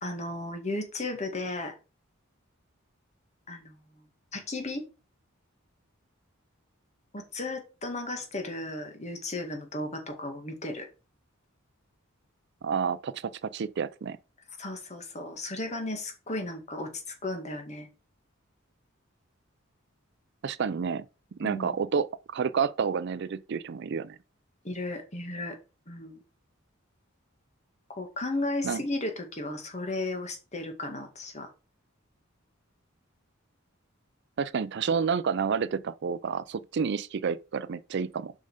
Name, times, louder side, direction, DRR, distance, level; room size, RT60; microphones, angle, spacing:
voice 1, 0.0-1.8 3.5-4.0 4.3-4.9 7.1-10.9 14.6-17.9 21.4-21.8 24.6-25.6 25.9-26.2 27.9-31.5, left 2 dB, 35° left, 2.0 m, -35 dB
voice 2, 12.6-14.2 20.4-21.1 21.4-24.2 28.6-28.8 34.4-38.3, right 6 dB, 55° right, 0.4 m, -29 dB
7.1 x 5.5 x 5.0 m
head